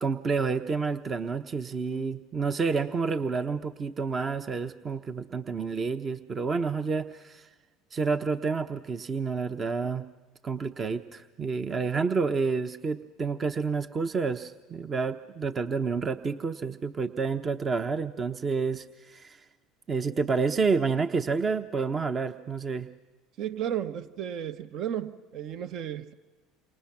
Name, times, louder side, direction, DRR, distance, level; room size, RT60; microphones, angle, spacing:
voice 1, 0.0-7.5 7.9-10.0 10.4-19.4 19.9-22.9, right 4 dB, 35° right, 8 dB, 0.9 m, -29 dB
voice 2, 23.4-26.1, right 10 dB, 55° right, 10 dB, 1.1 m, -33 dB
28.5 x 26.0 x 6.0 m, 1.2 s
hypercardioid pair, 75°, 0 cm